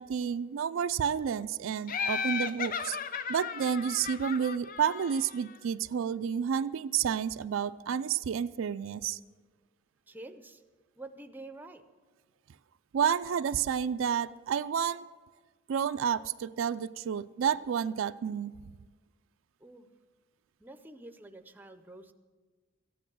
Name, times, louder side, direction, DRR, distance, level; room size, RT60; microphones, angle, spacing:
voice 1, 0.0-3.0 3.3-9.2 12.9-15.0 15.7-18.5, right 7 dB, 90° right, 13 dB, 0.4 m, -30 dB
Laughter, 1.9-5.5, left 6 dB, 45° left, 0.5 m, -35 dB
voice 2, 10.1-10.6 11.0-11.8 19.6-19.9 20.6-22.1, right 2 dB, 10° right, 9 dB, 0.6 m, -47 dB
14.0 x 10.0 x 6.2 m, 1.4 s
head